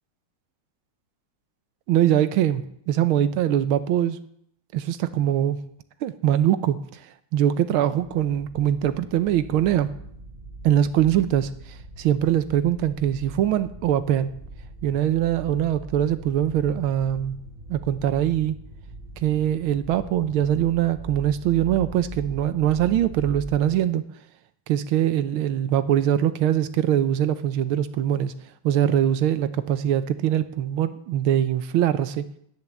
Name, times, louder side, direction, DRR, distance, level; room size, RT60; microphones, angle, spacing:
voice 1, 1.9-4.2 4.7-5.6 6.0-7.0 7.3-9.9 10.6-14.4 14.8-17.4 17.7-18.6 19.2-24.0 24.7-28.3 28.6-32.2, right 11 dB, 90° right, 12 dB, 1.6 m, -22 dB
sound 1, 8.0-23.7, right 2 dB, 25° right, 1.9 m, -41 dB
10.5 x 9.6 x 7.2 m, 0.70 s
omnidirectional pair, 2.2 m